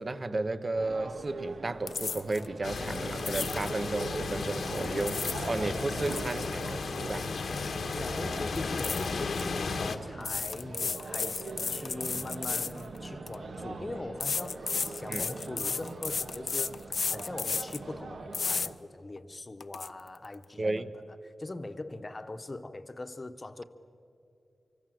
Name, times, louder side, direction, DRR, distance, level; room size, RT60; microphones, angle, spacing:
voice 1, 0.0-7.3 15.1-15.2 20.6-20.9, right 2 dB, 35° right, 1.0 m, -33 dB
sound 1, 0.7-18.7, right 3 dB, 80° right, 1.6 m, -42 dB
sound 2, 1.9-2.5 3.2-3.7 4.8-5.5 5.8-7.7 7.9-8.2 8.8-9.4 10.2-13.4 14.2-17.8 18.3-18.7 19.2-19.3 19.6-19.9, left 5 dB, 65° left, 0.5 m, -33 dB
sound 3, 2.6-10.0, left 4 dB, 90° left, 1.5 m, -34 dB
voice 2, 5.7-6.0 7.6-23.6, left 2 dB, 30° left, 1.0 m, -41 dB
25.5 x 24.0 x 7.7 m
wide cardioid pair, 115°, 0 cm